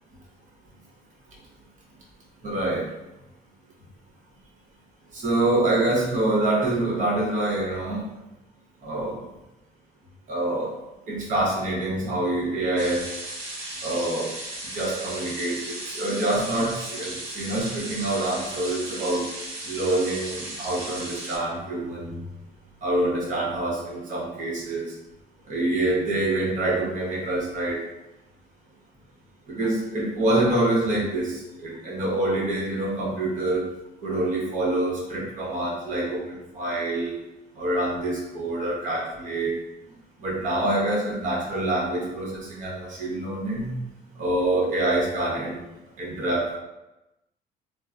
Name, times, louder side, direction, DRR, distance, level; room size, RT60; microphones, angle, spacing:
voice 1, 2.4-2.9 5.1-8.0 8.8-9.2 10.3-10.7 11.1-13.1 13.8-14.3 14.6-19.3 19.6-22.2 22.8-24.9 25.5-27.8 29.5-33.7 34.0-37.1 37.6-39.6 40.2-43.7 44.2-45.6 46.0-46.6, right 1 dB, 50° right, -3 dB, 1.0 m, -26 dB
sound 1, 12.8-21.4, right 1 dB, 90° right, 0.8 m, -36 dB
3.0 x 2.1 x 2.4 m, 0.94 s
cardioid pair, 110°, 17 cm